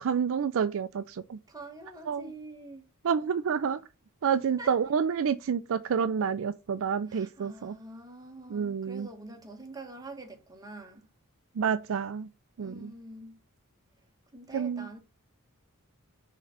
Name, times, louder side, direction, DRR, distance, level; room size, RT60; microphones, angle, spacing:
voice 1, 0.0-1.4 2.1-2.3 3.0-3.8 4.2-7.8 8.5-9.1 11.6-12.3 12.6-12.9 14.5-14.9, right 7 dB, 65° right, 0.4 m, -29 dB
voice 2, 1.5-2.9 4.6-4.7 7.1-11.0 12.6-13.4 14.3-15.0, right 2 dB, 15° right, 1.3 m, -45 dB
5.3 x 3.7 x 5.6 m
head